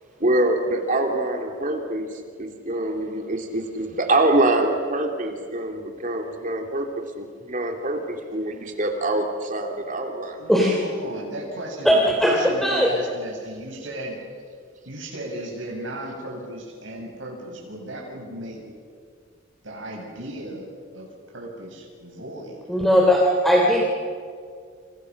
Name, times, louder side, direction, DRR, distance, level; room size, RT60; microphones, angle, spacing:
voice 1, 0.2-6.9 7.2-10.4, right 2 dB, 40° right, 4 dB, 2.6 m, -25 dB
voice 2, 10.4-14.2 14.8-18.6 19.6-22.6, right 1 dB, 75° right, -1 dB, 7.7 m, -36 dB
voice 3, 11.8-12.9 22.7-23.8, equal, ahead, -2 dB, 3.2 m, -18 dB
29.0 x 28.5 x 6.5 m, 2.2 s
head